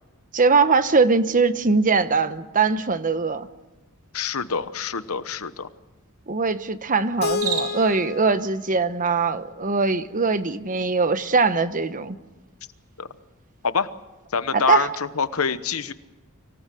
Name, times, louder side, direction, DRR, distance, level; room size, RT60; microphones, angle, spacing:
voice 1, 0.3-3.5 6.3-12.2 14.5-14.9, right 4 dB, 40° right, 12 dB, 1.0 m, -21 dB
voice 2, 4.1-5.7 13.0-13.1 13.6-13.9 14.3-15.9, left 5 dB, 75° left, 13 dB, 1.0 m, -25 dB
Keyboard (musical), 7.2-10.1, left 5 dB, 45° left, 1.0 m, -32 dB
Cricket, 7.2-8.0, right 6 dB, 85° right, 5.9 m, -30 dB
25.5 x 17.5 x 7.8 m, 1.1 s
head